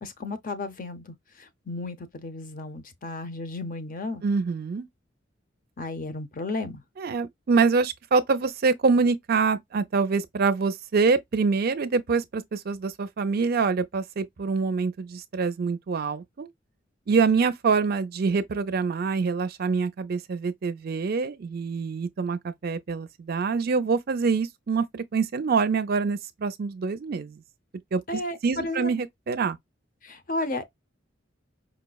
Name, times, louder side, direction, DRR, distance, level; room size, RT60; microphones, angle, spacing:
voice 1, 0.0-4.2 5.8-6.8 28.1-28.9 30.0-30.6, left 2 dB, 45° left, 0.7 m, -33 dB
voice 2, 4.2-4.9 7.0-16.5 17.1-27.4 27.9-29.6, right 4 dB, 55° right, 0.5 m, -25 dB
5.0 x 2.1 x 2.3 m
head